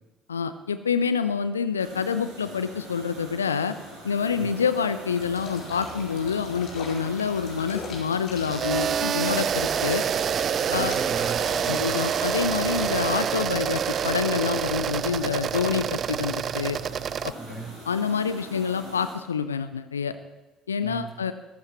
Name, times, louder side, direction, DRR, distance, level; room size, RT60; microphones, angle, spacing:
voice 1, 0.3-3.7 4.0-10.1 10.7-10.9 11.7-16.8 17.9-20.1 20.7-21.3, left 6 dB, 80° left, 12 dB, 0.5 m, -27 dB
sound 1, 1.8-19.1, right 1 dB, 80° right, 5.5 m, -43 dB
sound 2, 5.1-13.0, left 3 dB, 55° left, 4.3 m, -41 dB
sound 3, 8.5-17.3, right 8 dB, 45° right, 0.3 m, -27 dB
voice 2, 10.7-11.8 17.2-17.7 20.8-21.1, right 3 dB, 15° right, -2 dB, 5.4 m, -38 dB
20.5 x 14.5 x 3.1 m, 1.1 s
figure-of-eight pair, 50°, 0 cm